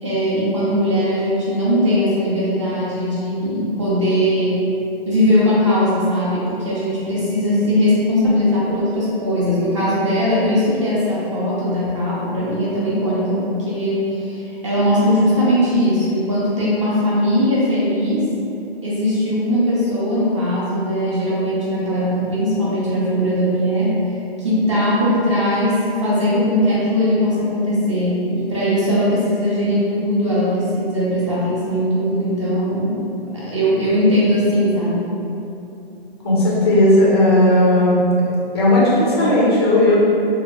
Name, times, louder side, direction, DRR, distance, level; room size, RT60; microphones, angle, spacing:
voice 1, 0.0-4.6 5.1-18.3 18.8-24.0 24.4-35.1, equal, 30° right, -8 dB, 0.5 m, -19 dB
voice 2, 36.2-38.0 38.5-40.1, left 1 dB, 25° left, -6 dB, 0.3 m, -15 dB
2.8 x 2.6 x 2.9 m, 2.8 s
hypercardioid pair, 160°, 31 cm